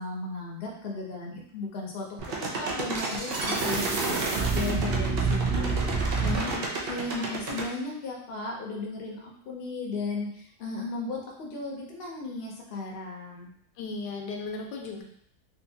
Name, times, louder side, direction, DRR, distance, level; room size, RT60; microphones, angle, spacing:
voice 1, 0.0-2.1 2.6-4.2 4.5-13.5, left 3 dB, 55° left, -1 dB, 0.7 m, -35 dB
sound 1, 2.2-7.7, right 4 dB, 75° right, 0.5 m, -28 dB
voice 2, 6.3-6.6 13.8-15.0, left 4 dB, 85° left, 1 dB, 1.2 m, -36 dB
3.7 x 2.5 x 2.7 m, 0.67 s
omnidirectional pair, 1.8 m